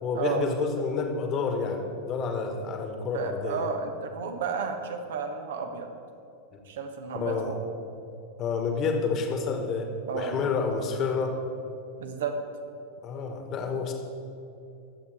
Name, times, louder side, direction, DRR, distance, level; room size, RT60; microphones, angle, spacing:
voice 1, 0.0-3.7 7.1-7.5 8.4-9.9 10.1-11.4 13.0-13.9, left 5 dB, 35° left, 4 dB, 1.8 m, -29 dB
voice 2, 3.1-5.9 6.7-7.6 10.1-10.4 12.0-12.3, right 5 dB, 60° right, 5 dB, 1.3 m, -32 dB
23.0 x 8.2 x 3.6 m, 2.7 s
figure-of-eight pair, 90°, 0 cm